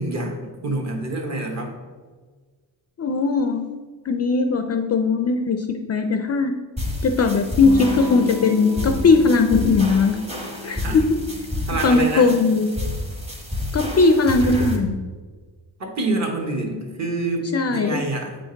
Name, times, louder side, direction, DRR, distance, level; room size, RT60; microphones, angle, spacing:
voice 1, 0.0-1.8 10.8-11.0 11.7-12.3 15.8-18.4, right 2 dB, 40° right, 1 dB, 1.2 m, -27 dB
voice 2, 3.0-3.6 4.1-6.5 7.0-10.2 10.6-11.0 11.8-12.7 13.7-15.0 16.7-16.8 17.5-18.0, left 4 dB, 40° left, 5 dB, 0.4 m, -19 dB
sound 1, 6.8-14.8, left 1 dB, 15° right, 1.0 m, -30 dB
Electric guitar / Strum, 7.6-13.0, left 5 dB, 55° right, 1.6 m, -35 dB
8.2 x 5.1 x 3.9 m, 1.4 s
wide cardioid pair, 170°, 42 cm